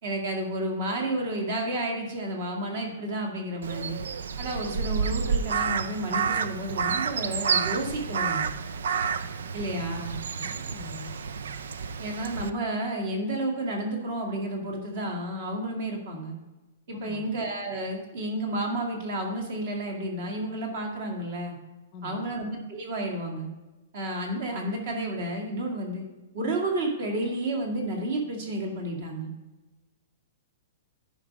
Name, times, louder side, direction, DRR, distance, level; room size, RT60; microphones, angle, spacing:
voice 1, 0.0-4.0 4.4-8.5 9.5-10.2 12.0-16.4 16.9-21.6 22.0-23.5 23.9-26.0 26.3-29.3, right 1 dB, 40° right, 1 dB, 2.0 m, -31 dB
Crow, 3.6-12.5, right 6 dB, 90° right, 0.5 m, -30 dB
voice 2, 10.4-11.1 16.9-17.3 21.9-22.4, left 5 dB, 20° left, 4 dB, 0.8 m, -43 dB
10.0 x 5.2 x 5.3 m, 1.1 s
hypercardioid pair, 180°, 0 cm